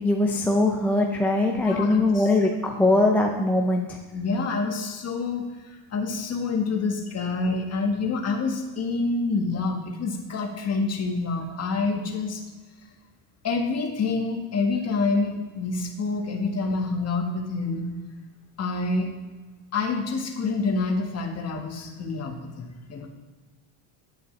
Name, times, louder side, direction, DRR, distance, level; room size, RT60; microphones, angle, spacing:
voice 1, 0.0-4.0, left 2 dB, 5° left, 0 dB, 0.4 m, -21 dB
voice 2, 1.7-2.2 2.8-2.9 4.1-12.4 13.4-17.9 18.6-19.1 19.7-23.1, left 3 dB, 30° left, 2 dB, 1.5 m, -27 dB
10.0 x 8.2 x 3.3 m, 1.3 s
cardioid pair, 130°, 48 cm